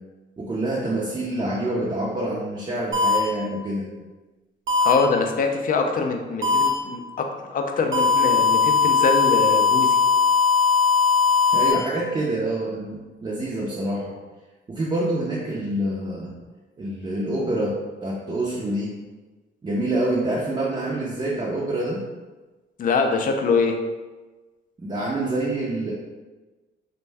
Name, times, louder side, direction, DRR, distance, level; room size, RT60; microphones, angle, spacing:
voice 1, 0.4-3.9 11.5-14.1 14.7-16.3 16.8-18.9 19.6-22.0 24.8-25.9, right 1 dB, 25° right, -6 dB, 0.5 m, -26 dB
sound 1, 2.9-3.2 4.7-4.9 6.4-6.7 7.9-11.7, left 5 dB, 75° right, 0.8 m, -19 dB
voice 2, 4.8-7.3 7.5-9.9 22.8-23.8, left 4 dB, 45° left, 4 dB, 0.4 m, -23 dB
2.6 x 2.1 x 3.2 m, 1.2 s
cardioid pair, 90°, 20 cm